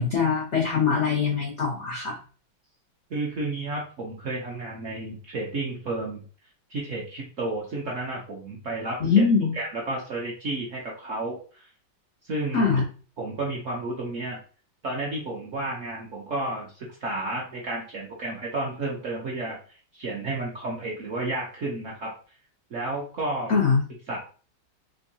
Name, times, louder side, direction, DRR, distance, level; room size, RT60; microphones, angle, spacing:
voice 1, 0.0-2.2 9.0-9.5 12.5-12.8 23.5-23.8, left 5 dB, 75° left, 0 dB, 0.6 m, -22 dB
voice 2, 3.1-6.2 6.7-9.2 9.5-11.7 12.3-12.8 13.2-14.4 14.8-19.6 19.9-22.1 22.7-23.5 24.1-24.2, right 2 dB, 60° right, -3 dB, 0.8 m, -32 dB
3.7 x 2.7 x 2.7 m, 0.39 s
omnidirectional pair, 2.2 m